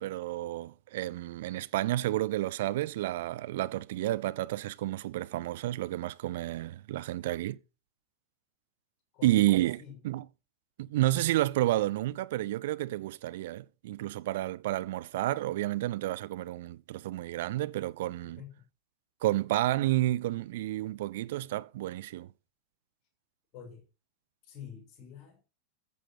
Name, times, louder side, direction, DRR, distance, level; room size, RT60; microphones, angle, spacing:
voice 1, 0.0-7.6 9.2-9.8 10.0-10.2 10.8-18.4 19.2-22.3, right 15 dB, 55° right, 0.6 m, -30 dB
voice 2, 9.1-9.4 9.8-10.0 18.4-18.6 23.5-23.9 24.4-25.4, left 7 dB, 35° left, 6.6 m, -47 dB
15.0 x 7.5 x 4.5 m
figure-of-eight pair, 90°, 0 cm